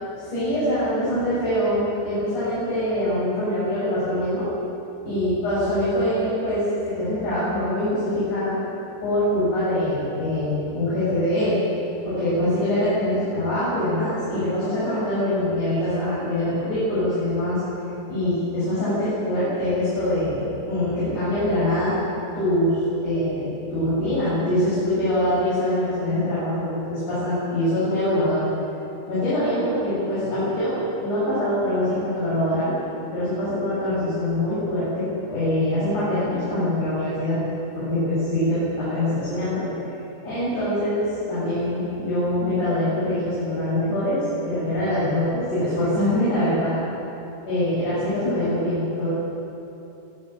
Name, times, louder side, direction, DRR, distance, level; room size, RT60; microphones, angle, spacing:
voice 1, 0.2-4.5 5.0-8.6 9.0-11.6 12.1-17.6 18.1-22.0 22.3-28.5 29.1-32.7 33.1-37.4 37.7-39.6 40.2-46.8 47.5-49.1, left 1 dB, 65° left, -11 dB, 8.9 m, -24 dB
25.5 x 13.5 x 9.1 m, 2.8 s
omnidirectional pair, 3.8 m